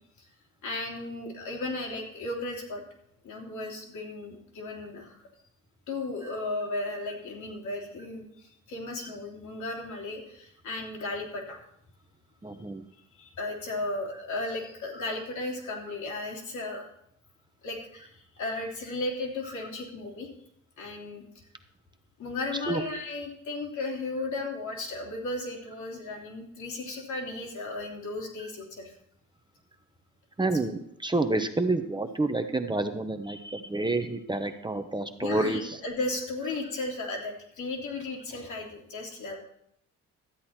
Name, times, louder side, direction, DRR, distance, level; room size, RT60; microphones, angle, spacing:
voice 1, 0.6-2.8 3.2-5.2 5.9-8.3 8.7-11.6 13.2-16.8 17.6-18.1 18.3-20.3 20.8-21.2 22.2-28.9 35.2-39.4, left 2 dB, 75° left, -1 dB, 3.0 m, -35 dB
voice 2, 12.4-12.8 14.9-15.1 22.7-22.8 28.4-28.5 30.4-35.8, right 2 dB, 15° right, 7 dB, 0.8 m, -29 dB
13.0 x 8.4 x 4.4 m, 0.74 s
cardioid pair, 90°, 30 cm